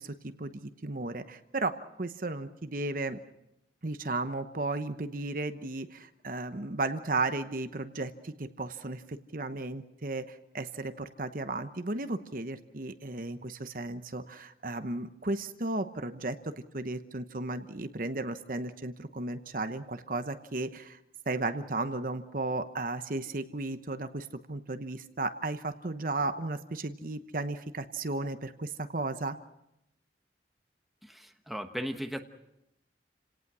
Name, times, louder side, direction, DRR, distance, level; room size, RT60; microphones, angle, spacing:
voice 1, 0.0-3.2 3.8-21.0 21.3-29.4, right 2 dB, 50° right, 9 dB, 1.0 m, -34 dB
voice 2, 31.0-32.2, equal, ahead, 5 dB, 1.1 m, -37 dB
29.5 x 18.0 x 6.2 m, 0.85 s
head